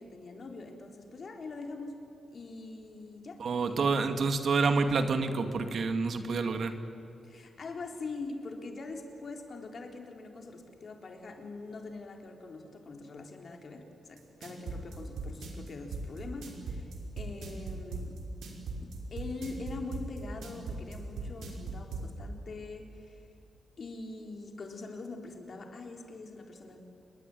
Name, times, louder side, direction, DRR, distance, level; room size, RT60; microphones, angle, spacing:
voice 1, 0.0-2.0 2.3-4.1 7.2-18.2 18.8-23.3 23.8-26.8, left 3 dB, 50° left, 3 dB, 3.9 m, -43 dB
voice 2, 3.4-6.7, right 4 dB, 60° right, 7 dB, 2.2 m, -28 dB
sound 1, 14.2-22.0, right 4 dB, 80° right, 5.3 m, -38 dB
28.0 x 21.5 x 9.2 m, 2.7 s
cardioid pair, 95°, 0 cm